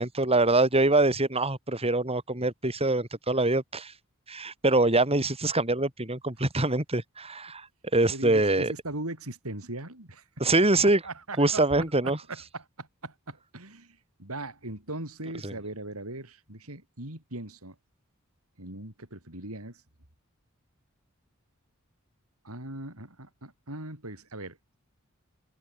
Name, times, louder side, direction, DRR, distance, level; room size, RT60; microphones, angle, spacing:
voice 1, 0.0-3.9 4.3-7.6 7.9-8.7 10.4-11.0 11.4-12.2 15.4-15.5, right 2 dB, 30° right, 6.7 m, -24 dB
voice 2, 8.1-10.7 11.0-17.7 18.6-19.7 22.4-24.6, right 2 dB, 85° right, 6.5 m, -40 dB
head